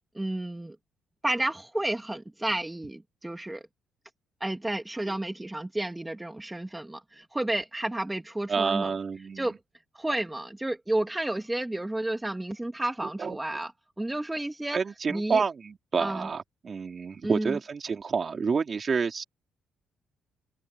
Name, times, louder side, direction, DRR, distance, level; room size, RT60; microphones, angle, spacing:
voice 1, 0.1-0.8 1.2-3.6 4.4-8.9 9.4-9.6 9.9-13.7 14.0-14.8 15.1-15.4 16.0-16.3 17.2-17.6, right 1 dB, 10° right, 2.2 m, -31 dB
voice 2, 8.5-9.5 13.2-13.4 14.7-19.2, right 5 dB, 40° right, 3.2 m, -29 dB
cardioid pair, 90°, 0 cm